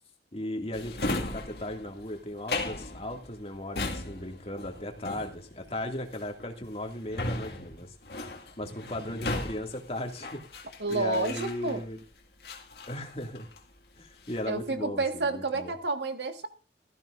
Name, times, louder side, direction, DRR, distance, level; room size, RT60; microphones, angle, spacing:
voice 1, 0.3-7.9 8.6-10.4 10.9-12.0 12.9-13.5 14.0-15.7, left 1 dB, 35° left, 3 dB, 2.3 m, -37 dB
Drawer open or close, 0.7-12.0 12.4-13.7 14.0-14.6, left 2 dB, 60° left, 2.1 m, -37 dB
voice 2, 10.8-11.8 14.5-16.5, right 3 dB, 80° right, 6 dB, 1.8 m, -30 dB
16.5 x 14.0 x 2.6 m, 0.33 s
head